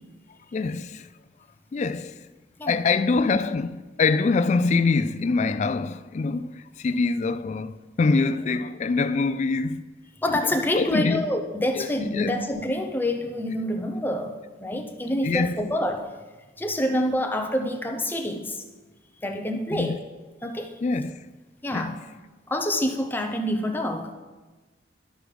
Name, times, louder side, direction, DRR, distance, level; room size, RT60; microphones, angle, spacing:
voice 1, 0.5-1.1 1.7-2.2 2.7-9.8 10.7-11.3 11.8-11.9 12.1-12.3 15.2-15.7 19.7-20.0 20.8-21.2 21.7-22.0, left 4 dB, 40° left, 0.3 m, -24 dB
voice 2, 10.2-16.1 16.6-18.6 19.2-20.0 20.4-20.7 21.6-22.0 22.5-24.1, left 1 dB, 10° left, 0.7 m, -27 dB
11.5 x 6.2 x 4.9 m
head